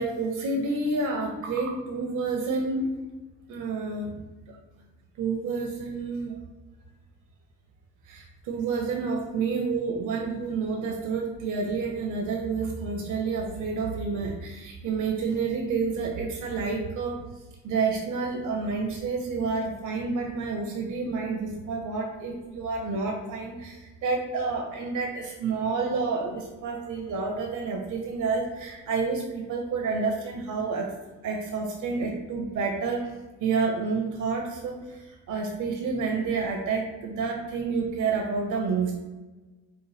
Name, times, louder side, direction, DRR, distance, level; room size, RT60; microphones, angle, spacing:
voice 1, 0.0-2.9 3.5-4.2 5.2-6.4 8.1-17.2 17.6-30.9 31.2-33.1 33.4-39.0, right 4 dB, 70° right, 0 dB, 0.6 m, -29 dB
4.0 x 2.1 x 3.3 m, 1.2 s
supercardioid pair, 65°, 32 cm